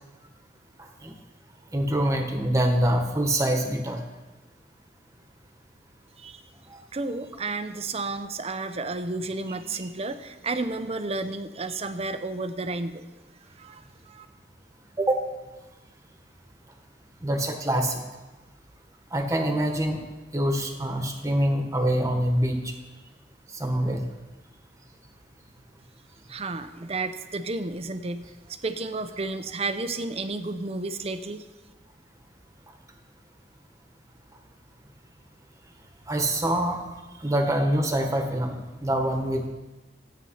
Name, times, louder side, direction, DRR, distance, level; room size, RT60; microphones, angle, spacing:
voice 1, 1.7-4.0 6.7-6.8 15.0-15.2 17.2-18.0 19.1-20.0 20.3-22.7 23.5-24.0 36.1-36.8 37.2-39.5, right 1 dB, 20° right, 4 dB, 1.5 m, -25 dB
voice 2, 6.9-13.0 13.6-14.3 26.3-31.5, right 3 dB, 35° right, 10 dB, 0.7 m, -32 dB
13.0 x 9.0 x 5.8 m, 1.2 s
head